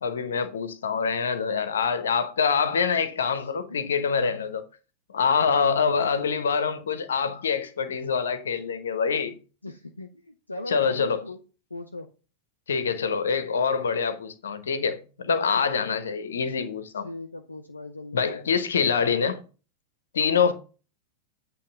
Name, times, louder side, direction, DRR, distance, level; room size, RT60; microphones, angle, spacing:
voice 1, 0.0-4.6 5.1-9.3 10.7-11.2 12.7-17.0 18.1-19.4 20.1-20.5, left 6 dB, 65° left, 0.9 m, -25 dB
voice 2, 3.4-3.8 6.2-6.3 7.2-7.4 9.6-11.4 11.7-12.1 15.2-15.7 17.0-18.6 20.2-20.4, left 2 dB, 80° left, 0.6 m, -40 dB
8.5 x 3.1 x 6.0 m
figure-of-eight pair, 90°, 0 cm